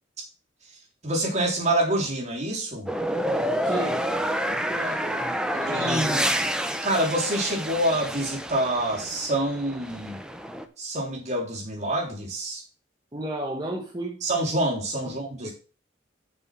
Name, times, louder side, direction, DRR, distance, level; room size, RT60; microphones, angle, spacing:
voice 1, 1.0-2.9 5.7-6.2 6.8-10.2 10.8-12.6 14.2-15.5, right 1 dB, 40° right, -2 dB, 3.7 m, -26 dB
sound 1, 2.9-10.7, equal, 5° right, 0.8 m, -28 dB
voice 2, 3.6-4.0 4.5-6.3 13.1-14.2 15.0-15.5, right 1 dB, 25° right, -1 dB, 1.5 m, -34 dB
6.9 x 6.5 x 6.2 m, 0.37 s
head